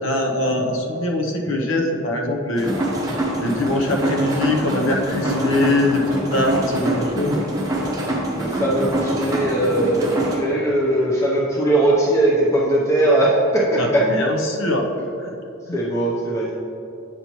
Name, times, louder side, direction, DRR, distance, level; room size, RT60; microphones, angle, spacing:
voice 1, 0.0-2.7 3.4-6.0 6.3-7.3 13.8-14.8 15.2-15.3 15.7-15.8, left 1 dB, 75° left, 1 dB, 0.7 m, -22 dB
sound 1, 2.5-10.4, right 1 dB, 20° right, 0.9 m, -24 dB
voice 2, 8.3-14.0 15.7-16.5, right 1 dB, 15° left, -5 dB, 0.6 m, -19 dB
8.4 x 5.5 x 3.0 m, 2.7 s
head